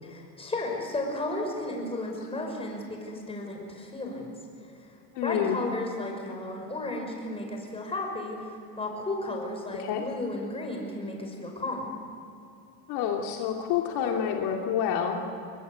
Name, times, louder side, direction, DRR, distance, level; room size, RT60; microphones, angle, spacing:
voice 1, 0.0-4.4 5.2-11.9, left 2 dB, 10° left, 1 dB, 5.8 m, -34 dB
voice 2, 5.1-5.6 9.8-10.0 12.9-15.2, left 8 dB, 60° left, 1 dB, 2.7 m, -28 dB
23.0 x 21.5 x 8.3 m, 2.6 s
supercardioid pair, 135°, 45 cm